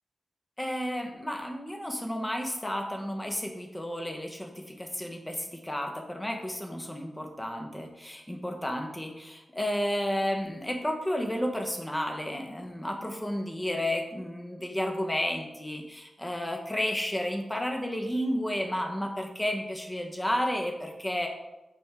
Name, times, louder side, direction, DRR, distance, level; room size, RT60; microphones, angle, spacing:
voice 1, 0.6-21.3, equal, 10° left, 3 dB, 0.9 m, -32 dB
8.4 x 3.6 x 3.4 m, 0.99 s
wide cardioid pair, 90°, 0 cm